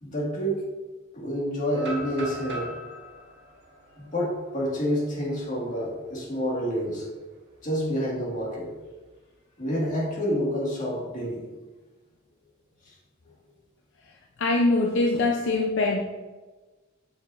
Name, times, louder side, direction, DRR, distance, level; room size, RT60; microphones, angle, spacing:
voice 1, 0.0-0.6 1.1-2.7 4.0-7.1 7.6-8.7 9.6-11.4 12.9-13.0, equal, 40° left, -3 dB, 1.8 m, -28 dB
sound 1, 1.7-5.6 6.1-6.2 6.7-7.0 8.3-9.1, equal, 60° right, 1.4 m, -40 dB
voice 2, 14.4-16.0, left 2 dB, 65° left, 0 dB, 0.6 m, -23 dB
7.2 x 6.5 x 2.5 m, 1.3 s
head